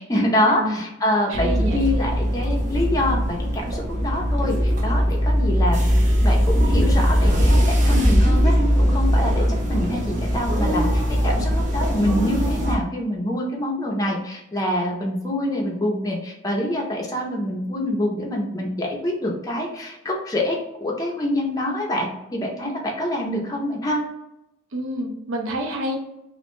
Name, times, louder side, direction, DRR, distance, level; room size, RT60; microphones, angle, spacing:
voice 1, 0.0-5.9 6.2-24.0, left 1 dB, 20° left, -1 dB, 0.4 m, -25 dB
sound 1, 1.3-12.8, equal, 40° right, 0.5 m, -20 dB
voice 2, 1.3-1.9 24.7-26.0, right 1 dB, 85° right, 2 dB, 0.5 m, -28 dB
2.5 x 2.1 x 2.9 m, 0.88 s
head